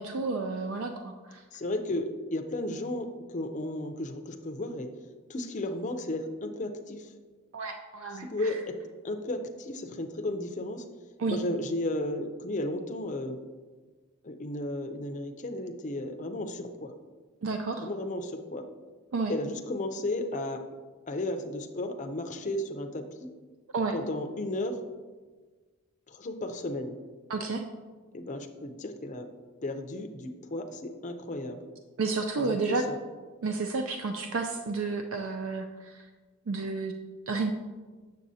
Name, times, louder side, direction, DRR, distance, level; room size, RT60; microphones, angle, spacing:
voice 1, 0.0-1.4 7.5-8.6 11.2-11.4 17.4-17.9 19.1-19.3 23.7-23.9 27.3-27.6 32.0-32.8 33.4-36.0 36.5-36.9 37.3-37.5, right 4 dB, 65° right, 5 dB, 0.4 m, -31 dB
voice 2, 1.5-4.9 5.3-7.1 8.2-8.8 9.0-10.9 11.3-13.4 14.2-16.9 17.8-18.7 19.3-20.7 21.1-23.3 23.9-24.8 26.1-27.0 28.1-29.3 29.6-31.6 32.4-33.0, left 1 dB, 35° left, 5 dB, 0.5 m, -34 dB
7.5 x 6.7 x 2.7 m, 1.4 s
head